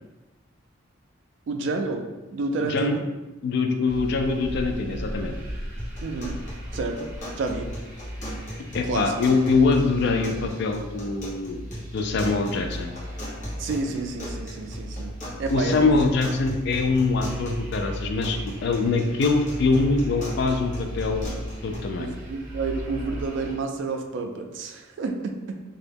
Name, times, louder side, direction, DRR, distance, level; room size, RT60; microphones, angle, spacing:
voice 1, 1.5-2.1 2.3-3.0 6.0-6.4 6.7-7.1 7.3-7.7 8.8-9.1 13.6-16.0 22.0-25.6, right 3 dB, 65° right, 4 dB, 0.3 m, -30 dB
voice 2, 2.6-3.0 3.4-5.4 8.7-11.6 11.9-12.9 15.5-21.3 21.6-22.1, left 3 dB, 60° left, 5 dB, 0.3 m, -23 dB
sound 1, 3.9-23.5, equal, 40° right, 0.7 m, -36 dB
sound 2, 5.8-21.8, equal, 40° left, 0.8 m, -39 dB
2.3 x 2.0 x 3.3 m, 1.1 s
head